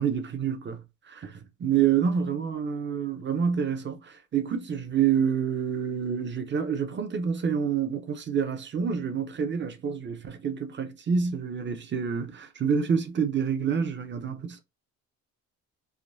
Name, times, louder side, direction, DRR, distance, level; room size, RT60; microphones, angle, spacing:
voice 1, 0.0-14.6, right 7 dB, 40° right, 0.8 m, -28 dB
3.6 x 2.2 x 2.5 m
cardioid pair, 90°, 30 cm